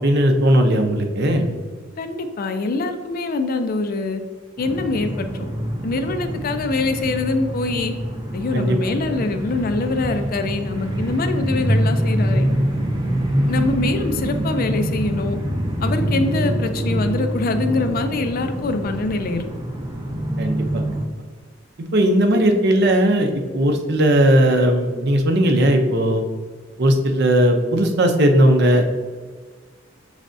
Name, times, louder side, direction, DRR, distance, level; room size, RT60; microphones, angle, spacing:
voice 1, 0.0-1.5 8.5-8.8 20.4-20.8 21.8-26.2 26.8-28.9, right 1 dB, 60° right, 5 dB, 0.6 m, -17 dB
voice 2, 2.0-4.2 4.6-5.5 5.8-7.9 8.3-12.5 13.5-15.4 15.8-19.4, left 3 dB, 50° left, 7 dB, 0.4 m, -24 dB
sound 1, 4.6-21.0, right 1 dB, 20° right, 0.7 m, -25 dB
6.2 x 3.3 x 2.6 m, 1.5 s
head